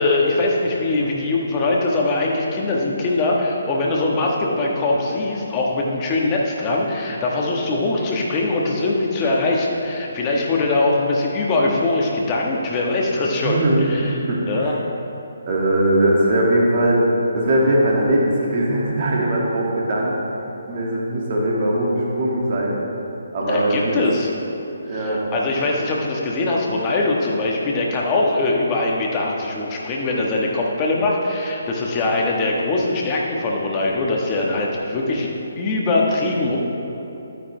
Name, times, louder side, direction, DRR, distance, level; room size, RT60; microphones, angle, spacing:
voice 1, 0.0-14.1 14.5-14.7 23.4-24.3 24.9-35.3 35.6-36.6, left 2 dB, 25° left, -2 dB, 1.4 m, -22 dB
voice 2, 13.4-14.8 15.5-17.0 17.3-20.2 20.7-22.8 23.3-24.0 24.8-25.2, right 1 dB, 40° right, -4 dB, 2.2 m, -20 dB
11.5 x 9.2 x 3.3 m, 3.0 s
figure-of-eight pair, 140°, 0 cm